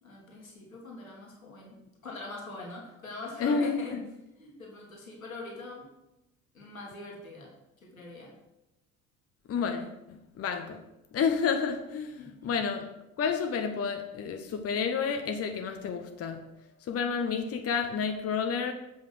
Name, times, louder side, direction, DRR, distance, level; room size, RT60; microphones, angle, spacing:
voice 1, 0.0-1.8 2.0-4.0 4.4-5.9 6.5-7.5 7.8-8.3 12.2-12.5, left 2 dB, 85° left, 1.8 m, -43 dB
voice 2, 3.4-4.0 9.5-10.8 11.1-12.9 13.2-16.4 16.8-18.7, left 6 dB, 35° left, 1.0 m, -30 dB
7.6 x 5.6 x 6.2 m
figure-of-eight pair, 55°, 40 cm